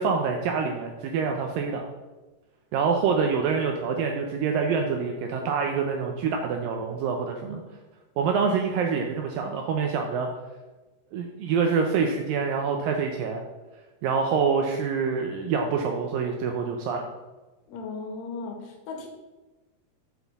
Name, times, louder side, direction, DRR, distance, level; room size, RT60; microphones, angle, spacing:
voice 1, 0.0-1.9 2.7-7.6 8.2-10.3 11.1-13.4 14.0-17.1, right 5 dB, 80° right, 3 dB, 2.0 m, -26 dB
voice 2, 17.7-19.1, left 4 dB, 90° left, 2 dB, 3.4 m, -36 dB
8.0 x 7.8 x 3.5 m, 1.2 s
omnidirectional pair, 4.7 m